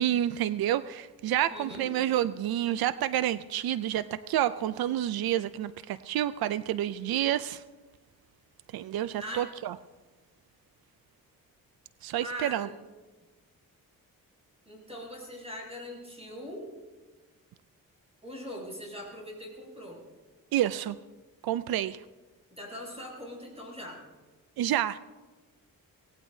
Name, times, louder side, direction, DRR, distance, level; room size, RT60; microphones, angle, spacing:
voice 1, 0.0-7.6 8.7-9.7 12.0-12.7 20.5-21.0 21.4-22.0 24.6-25.0, right 12 dB, 90° right, 15 dB, 0.5 m, -29 dB
voice 2, 1.5-1.9 9.2-9.5 12.2-12.8 14.6-16.6 18.2-20.0 22.5-24.0, equal, 15° right, -2 dB, 6.4 m, -41 dB
25.0 x 17.5 x 2.7 m, 1.3 s
wide cardioid pair, 120°, 35 cm